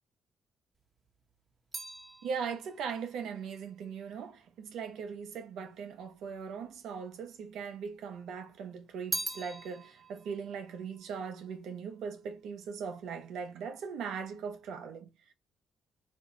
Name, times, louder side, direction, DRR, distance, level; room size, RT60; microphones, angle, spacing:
sound 1, 0.8-5.2 6.0-6.8 7.1-8.2 8.5-12.1 12.3-12.9, right 2 dB, 30° right, 0.7 m, -43 dB
voice 1, 2.2-15.3, right 6 dB, 75° right, 0.5 m, -40 dB
2.4 x 2.2 x 3.0 m
hypercardioid pair, 50°, 0 cm